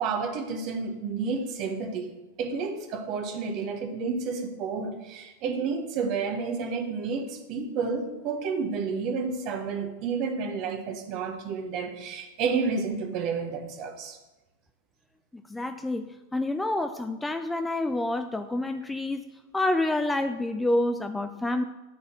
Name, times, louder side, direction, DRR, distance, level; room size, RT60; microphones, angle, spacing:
voice 1, 0.0-2.1 2.4-14.2, right 5 dB, 40° right, 1.4 m, -30 dB
voice 2, 15.5-19.3 19.5-21.6, left 2 dB, 5° left, 0.4 m, -28 dB
10.5 x 4.3 x 7.8 m
figure-of-eight pair, 90°, 0 cm